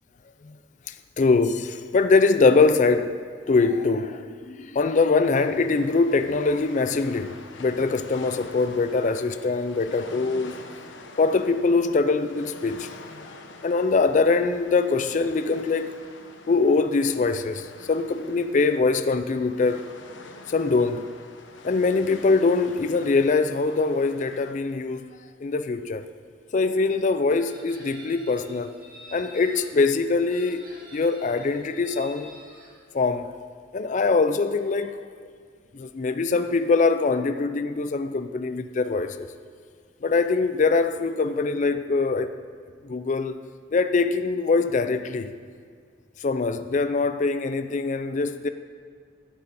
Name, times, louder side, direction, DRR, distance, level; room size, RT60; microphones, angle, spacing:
voice 1, 0.9-3.2 3.5-10.6 11.2-13.3 13.6-15.9 16.5-19.8 20.5-21.1 21.6-26.1 26.5-28.7 29.1-30.6 30.9-32.3 32.9-33.3 33.7-35.0 35.7-39.3 40.0-42.3 42.8-43.4 43.7-45.3 46.2-48.5, left 4 dB, 40° left, 0.4 m, -23 dB
sound 1, 5.2-24.5, left 3 dB, 75° left, 0.9 m, -46 dB
Chicken rooster, 27.4-29.8 30.3-32.7, right 1 dB, 45° right, 2.1 m, -48 dB
12.0 x 6.9 x 5.4 m
head